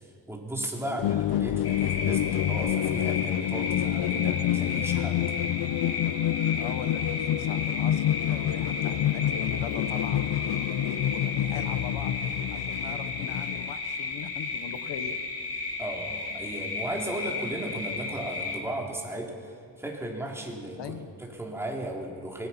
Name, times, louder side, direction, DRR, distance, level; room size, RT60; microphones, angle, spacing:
voice 1, 0.3-5.2 15.8-22.5, right 1 dB, 5° right, -1 dB, 3.4 m, -36 dB
sound 1, 1.0-13.7, left 12 dB, 65° left, 0.6 m, -28 dB
sound 2, 1.6-18.6, left 3 dB, 35° left, 3.0 m, -34 dB
voice 2, 6.6-12.2 12.5-15.1 20.8-21.1, left 7 dB, 85° left, 10 dB, 1.3 m, -41 dB
24.0 x 20.5 x 5.8 m, 2.4 s
wide cardioid pair, 135°, 42 cm